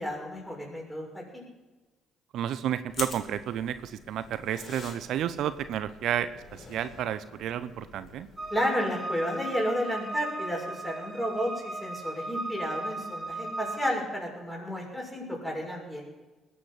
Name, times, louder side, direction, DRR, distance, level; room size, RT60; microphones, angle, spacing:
voice 1, 0.0-1.4 8.5-16.1, equal, 10° left, -2 dB, 6.6 m, -32 dB
voice 2, 2.3-8.3, right 10 dB, 65° right, 13 dB, 0.7 m, -31 dB
sound 1, 2.9-8.7, left 5 dB, 55° left, 2.2 m, -45 dB
sound 2, 8.4-13.9, right 1 dB, 25° right, 3.5 m, -36 dB
20.5 x 8.7 x 5.9 m, 1.2 s
hypercardioid pair, 50°, 0 cm